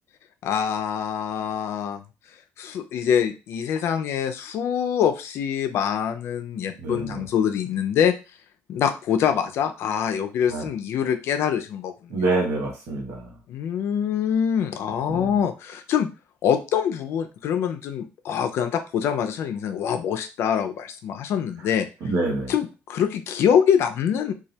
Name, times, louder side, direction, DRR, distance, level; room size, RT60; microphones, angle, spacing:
voice 1, 0.4-2.0 2.6-8.1 8.7-12.4 13.5-16.1 16.4-21.9 22.5-24.3, left 8 dB, 65° left, 7 dB, 0.3 m, -24 dB
voice 2, 6.8-7.3 10.5-10.7 12.1-13.3 15.1-15.3 22.0-22.5, right 2 dB, 75° right, 0 dB, 1.0 m, -26 dB
2.2 x 2.1 x 2.7 m, 0.30 s
cardioid pair, 120°, 5 cm